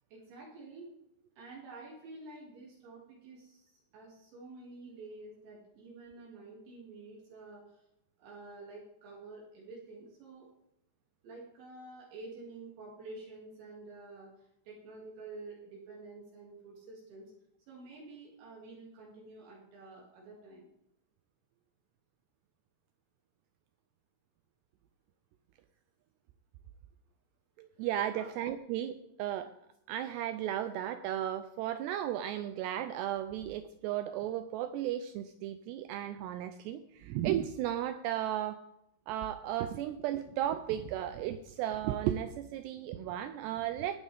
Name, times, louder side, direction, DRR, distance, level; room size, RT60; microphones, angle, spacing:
voice 1, 0.1-0.9 1.4-7.8 8.2-10.5 11.2-17.3 17.7-20.7 28.1-28.3, right 3 dB, 70° right, -4 dB, 4.8 m, -49 dB
voice 2, 27.6-29.5 29.9-38.6 39.1-44.0, right 11 dB, 90° right, 10 dB, 2.4 m, -35 dB
20.5 x 9.2 x 3.5 m, 0.82 s
omnidirectional pair, 5.5 m